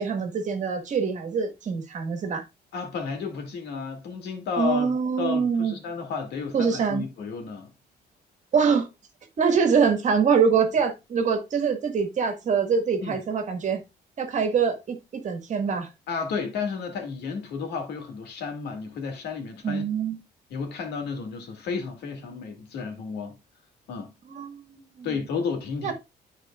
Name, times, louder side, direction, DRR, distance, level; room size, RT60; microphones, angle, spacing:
voice 1, 0.0-2.4 4.6-5.8 6.5-7.1 8.5-8.9 9.4-13.8 14.2-15.9 19.6-20.2 24.3-25.2 25.8-25.9, right 6 dB, 45° right, 1.8 m, -24 dB
voice 2, 2.7-7.7 13.0-13.2 16.1-19.8 20.5-23.4 23.9-24.1 25.0-25.9, left 5 dB, 85° left, 2.3 m, -32 dB
12.5 x 4.4 x 2.4 m
cardioid pair, 145°, 17 cm